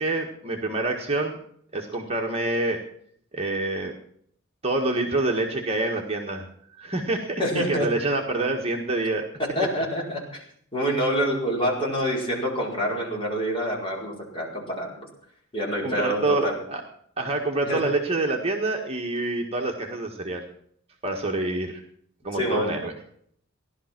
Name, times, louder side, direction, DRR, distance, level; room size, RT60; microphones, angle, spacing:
voice 1, 0.0-1.4 1.7-2.8 3.3-3.9 4.6-6.5 6.8-9.2 15.8-16.8 17.2-20.4 21.0-21.8 22.2-22.9, right 2 dB, 30° right, 1 dB, 1.6 m, -26 dB
voice 2, 7.4-7.9 9.5-10.4 10.7-15.0 15.5-16.5 17.7-17.8 22.3-22.7, equal, 25° left, -3 dB, 4.9 m, -26 dB
17.0 x 11.5 x 6.0 m, 0.65 s
head